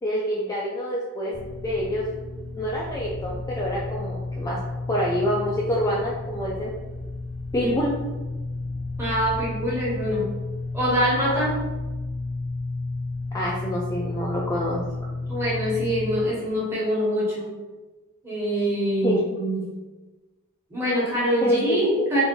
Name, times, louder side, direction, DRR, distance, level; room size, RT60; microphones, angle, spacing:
voice 1, 0.0-1.3 1.6-2.0 2.5-4.6 4.9-6.7 7.5-7.9 13.3-14.9 19.0-19.2 21.4-21.8, equal, 15° left, -5 dB, 0.3 m, -26 dB
sound 1, 1.3-16.2, left 2 dB, 70° left, 0.6 m, -32 dB
voice 2, 9.0-10.3 10.7-11.6 15.3-17.5 18.2-19.6 20.7-22.2, equal, 10° right, -7 dB, 1.1 m, -24 dB
3.5 x 2.5 x 3.0 m, 1.2 s
head